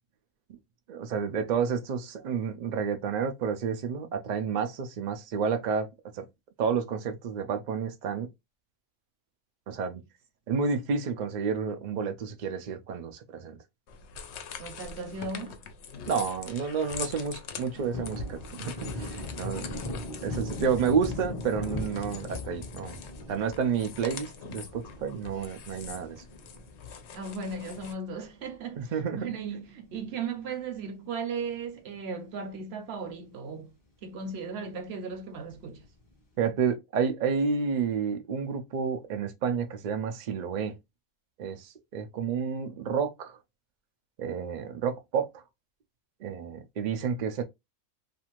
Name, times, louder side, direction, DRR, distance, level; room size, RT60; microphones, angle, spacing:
voice 1, 0.9-5.9 6.1-6.3 6.6-8.3 9.7-10.0 10.5-13.6 16.1-19.8 20.2-23.0 23.3-26.2 28.8-29.3 36.4-40.8 41.4-43.4 44.2-45.4 46.2-47.4, right 6 dB, 75° right, 0.4 m, -30 dB
sound 1, 13.9-27.9, left 5 dB, 65° left, 0.8 m, -44 dB
voice 2, 14.6-15.6 17.8-18.0 27.1-33.7 34.0-35.9, right 4 dB, 60° right, 0.8 m, -36 dB
Thunder, 17.5-28.2 28.6-28.7 29.1-30.6 30.9-31.0 31.4-32.2 32.6-32.7 33.0-33.1 35.5-36.0, left 2 dB, 20° left, 0.6 m, -40 dB
2.5 x 2.5 x 2.9 m
omnidirectional pair, 1.4 m